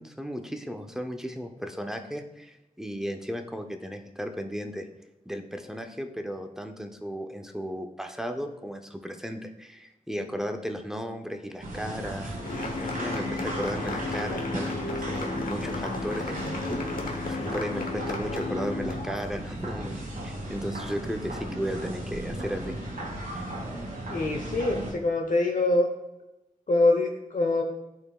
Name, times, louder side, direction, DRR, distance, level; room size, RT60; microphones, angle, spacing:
voice 1, 0.0-4.9 5.3-12.3 12.8-22.8 23.3-23.4, equal, 5° right, 5 dB, 0.6 m, -35 dB
sound 1, 11.6-24.9, right 1 dB, 85° right, 1.6 m, -36 dB
sound 2, 12.4-19.2, left 3 dB, 90° left, 1.0 m, -34 dB
voice 2, 24.1-25.9 26.7-27.6, left 2 dB, 65° left, 2 dB, 0.9 m, -24 dB
12.0 x 4.3 x 2.4 m, 0.95 s
wide cardioid pair, 100°, 14 cm